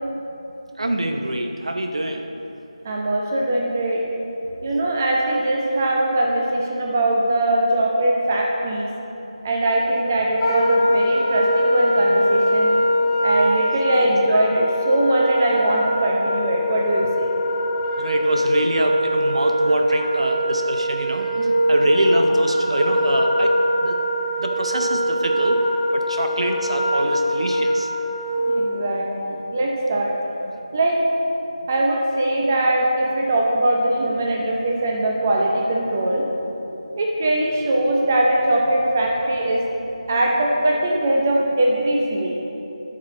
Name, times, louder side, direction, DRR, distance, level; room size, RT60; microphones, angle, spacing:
voice 1, 0.8-2.3 14.3-14.7 18.0-21.3 21.7-23.5 23.8-23.9 24.4-25.6 25.9-27.9, right 1 dB, 60° right, 4 dB, 0.8 m, -24 dB
voice 2, 2.8-4.0 4.6-8.9 9.4-12.7 13.2-17.3 21.4-21.5 28.5-30.1 30.7-31.0 31.7-36.2 37.0-39.6 40.1-42.3, right 1 dB, 20° right, -2 dB, 0.7 m, -21 dB
Wind instrument woodwind instrument, 10.4-28.5, equal, 5° left, 1.2 m, -22 dB
13.5 x 5.2 x 4.1 m, 2.9 s
figure-of-eight pair, 170°, 3 cm